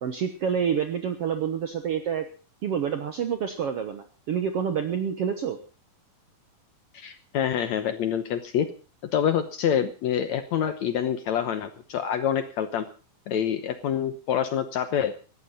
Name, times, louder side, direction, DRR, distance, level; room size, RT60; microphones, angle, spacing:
voice 1, 0.0-2.3 2.6-5.6, right 7 dB, 65° right, 7 dB, 1.5 m, -28 dB
voice 2, 6.9-8.7 9.1-12.8 13.3-15.1, left 9 dB, 70° left, 10 dB, 1.9 m, -26 dB
18.0 x 15.0 x 4.2 m, 0.35 s
omnidirectional pair, 4.2 m